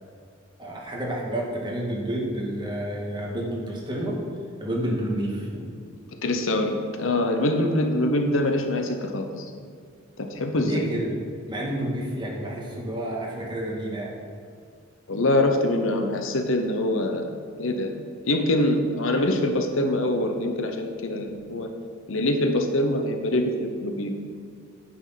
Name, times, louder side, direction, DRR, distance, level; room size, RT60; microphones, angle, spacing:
voice 1, 0.6-4.2 4.6-5.7 10.6-11.2 11.5-14.1, right 1 dB, 20° right, -3 dB, 2.1 m, -29 dB
voice 2, 6.2-9.4 10.2-10.8 15.1-17.3 17.6-17.9 18.2-21.7 22.1-24.1, left 1 dB, 65° left, 5 dB, 0.9 m, -24 dB
9.4 x 6.3 x 5.9 m, 2.2 s
head